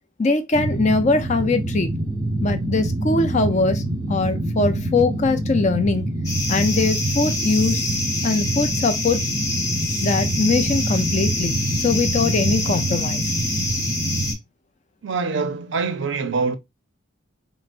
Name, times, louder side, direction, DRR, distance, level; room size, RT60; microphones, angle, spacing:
voice 1, 0.2-1.9 2.4-3.8 4.1-6.1 6.5-7.9 8.2-9.2 10.0-13.4, left 3 dB, 35° left, 0.5 m, -21 dB
sound 1, 0.5-14.3, right 1 dB, 20° right, 0.8 m, -26 dB
sound 2, 6.2-14.3, left 2 dB, 15° left, 0.9 m, -27 dB
voice 2, 15.0-16.6, right 4 dB, 60° right, 0.5 m, -24 dB
4.7 x 2.0 x 2.5 m
head